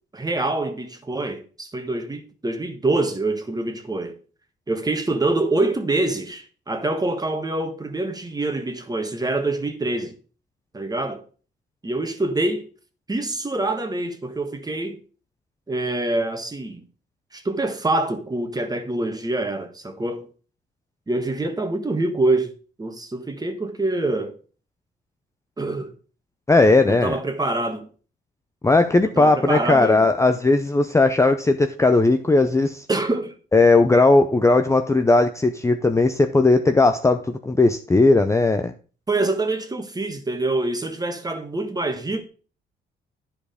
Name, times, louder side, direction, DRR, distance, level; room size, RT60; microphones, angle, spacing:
voice 1, 0.1-4.2 4.7-10.1 10.7-11.2 11.8-12.7 13.1-15.0 15.7-16.8 17.3-20.3 21.1-22.5 22.8-24.4 25.6-25.9 26.9-27.9 29.2-30.0 32.9-33.3 39.1-42.3, right 2 dB, 20° right, 1.4 m, -25 dB
voice 2, 26.5-27.2 28.6-32.9 33.5-38.7, left 3 dB, 15° left, 0.6 m, -17 dB
10.5 x 4.9 x 5.0 m
cardioid pair, 90°, 20 cm